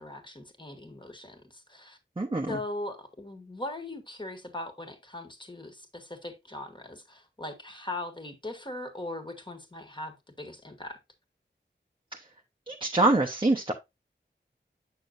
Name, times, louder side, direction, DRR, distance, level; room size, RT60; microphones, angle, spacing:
voice 1, 0.0-2.0 2.5-11.0, left 2 dB, 25° left, 1.6 m, -40 dB
voice 2, 2.2-2.6 12.1-12.3 12.7-13.7, right 2 dB, 25° right, 0.8 m, -25 dB
7.7 x 6.2 x 2.5 m
wide cardioid pair, 55°, 20 cm